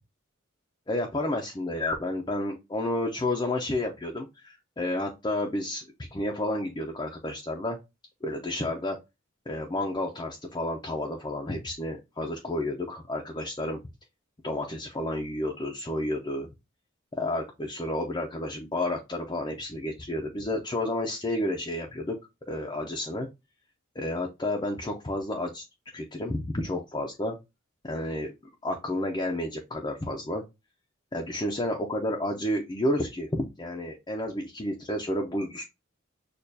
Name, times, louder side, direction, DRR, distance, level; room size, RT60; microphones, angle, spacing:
voice 1, 0.9-7.8 8.2-9.0 9.5-13.8 14.4-16.5 17.2-22.2 22.5-23.3 24.0-25.6 25.9-27.4 27.8-28.3 28.6-30.4 31.1-35.6, left 1 dB, 20° left, 0 dB, 0.6 m, -31 dB
6.5 x 2.4 x 2.7 m, 0.23 s
head